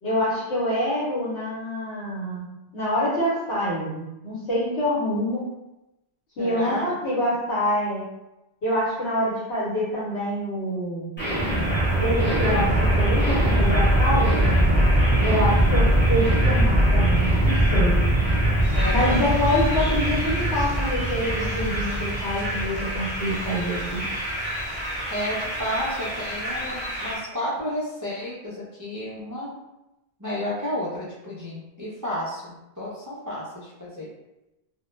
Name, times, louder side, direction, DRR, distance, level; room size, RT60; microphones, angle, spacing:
voice 1, 0.0-2.4 2.7-5.4 6.4-8.1 8.6-11.1 12.0-14.5 15.2-18.0 18.9-24.0, equal, 80° left, -8 dB, 1.0 m, -26 dB
voice 2, 6.4-6.9 15.2-15.5 18.7-19.3 25.1-29.6 30.2-34.1, equal, 35° right, -8 dB, 0.3 m, -32 dB
sound 1, 11.2-27.2, right 1 dB, 15° left, 0.6 m, -22 dB
sound 2, 18.6-27.1, equal, 5° right, 1.0 m, -40 dB
2.2 x 2.1 x 3.0 m, 0.96 s
omnidirectional pair, 1.1 m